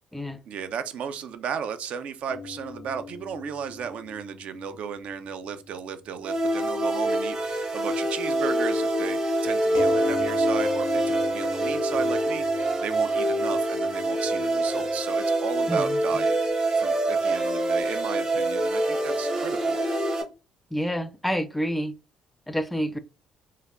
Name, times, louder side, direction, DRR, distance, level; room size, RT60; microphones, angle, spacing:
voice 1, 0.5-16.4 16.8-19.8, right 7 dB, 60° right, 0.4 m, -35 dB
sound 1, 2.3-6.2 6.4-6.5 9.7-15.0, left 7 dB, 90° left, 0.4 m, -39 dB
sound 2, 6.2-20.2, right 1 dB, 35° right, 1.1 m, -25 dB
voice 2, 15.7-16.0 20.7-21.9 22.5-23.0, equal, 5° left, 0.4 m, -28 dB
3.1 x 2.3 x 2.4 m
hypercardioid pair, 55°, 2 cm